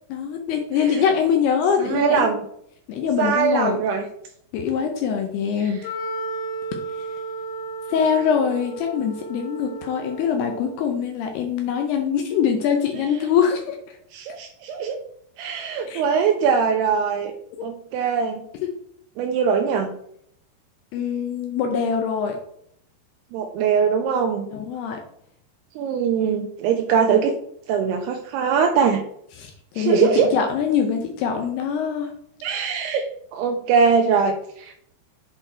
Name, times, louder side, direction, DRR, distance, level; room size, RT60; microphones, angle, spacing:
voice 1, 0.1-2.3 2.9-3.8 4.5-5.8 6.9-7.1 7.9-14.0 15.9-16.0 17.6-17.7 18.6-18.7 20.9-22.4 24.5-25.0 29.4-32.1, left 7 dB, 80° left, 3 dB, 2.5 m, -23 dB
voice 2, 1.8-2.4 3.2-4.0 5.6-5.8 14.1-15.0 15.4-17.3 17.6-18.4 19.2-19.9 23.3-24.5 25.8-27.4 27.7-29.0 29.8-30.3 32.4-33.1 33.3-34.8, right 6 dB, 85° right, 3 dB, 2.4 m, -21 dB
Wind instrument woodwind instrument, 5.8-10.9, right 3 dB, 50° left, 2.6 m, -33 dB
7.6 x 4.4 x 4.4 m, 0.70 s
omnidirectional pair, 5.2 m